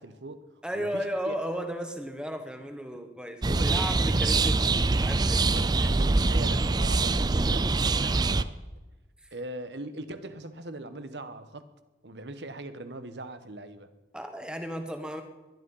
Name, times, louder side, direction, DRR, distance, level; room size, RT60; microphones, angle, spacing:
voice 1, 0.0-0.5 0.7-1.4 3.4-4.3 5.5-8.5 9.3-11.6 12.0-13.9, right 2 dB, 75° right, 10 dB, 1.3 m, -41 dB
voice 2, 0.6-5.9 9.2-9.3 14.1-15.2, equal, 5° right, 6 dB, 1.5 m, -35 dB
sound 1, 3.4-8.4, right 3 dB, 25° right, 0.4 m, -24 dB
21.0 x 11.5 x 5.7 m, 1.1 s
head